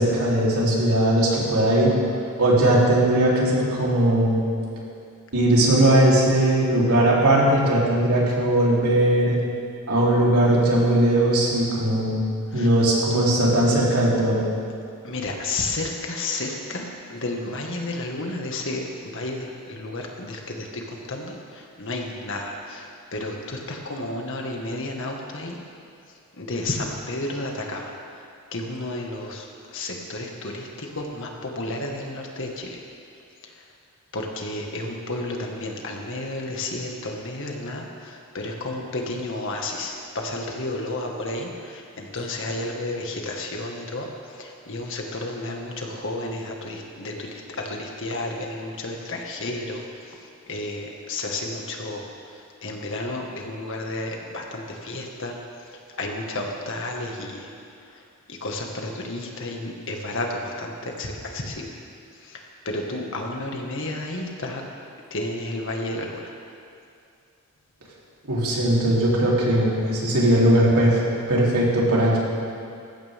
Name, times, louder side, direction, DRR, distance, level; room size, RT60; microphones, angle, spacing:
voice 1, 0.0-1.9 2.4-4.4 5.3-9.4 9.9-12.2 12.5-14.4 68.3-71.0 71.3-72.2, right 1 dB, 80° right, -5 dB, 3.8 m, -19 dB
voice 2, 15.0-21.3 21.8-22.8 23.1-25.6 26.4-27.9 28.5-29.4 29.7-30.7 31.0-32.7 34.1-37.9 38.3-41.5 42.0-44.0 44.4-47.3 47.7-49.8 50.5-52.0 52.6-55.3 56.0-57.5 58.4-60.7 61.0-61.7 62.7-64.6 65.1-66.1, left 2 dB, 60° left, 1 dB, 1.9 m, -31 dB
19.0 x 15.5 x 3.7 m, 2.4 s
head